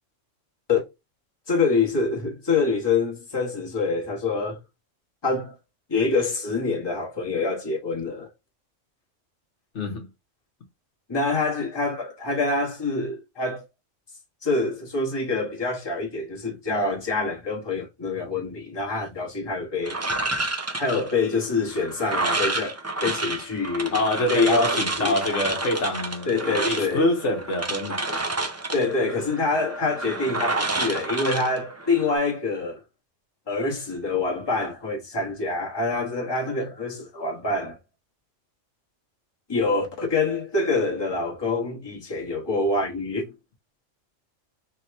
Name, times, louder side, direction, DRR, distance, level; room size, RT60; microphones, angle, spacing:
voice 1, 1.5-4.6 5.2-5.6 5.9-8.3 11.1-13.6 14.4-20.0 20.8-24.0 24.3-24.7 25.0-25.2 26.2-27.1 28.7-32.8 33.5-37.8 39.5-43.3, left 3 dB, 20° left, 1.1 m, -26 dB
voice 2, 9.7-10.1 23.9-28.3, left 1 dB, 70° left, 1.2 m, -25 dB
sound 1, 19.9-32.2, right 2 dB, 25° right, 0.3 m, -29 dB
3.4 x 2.9 x 4.3 m
omnidirectional pair, 1.3 m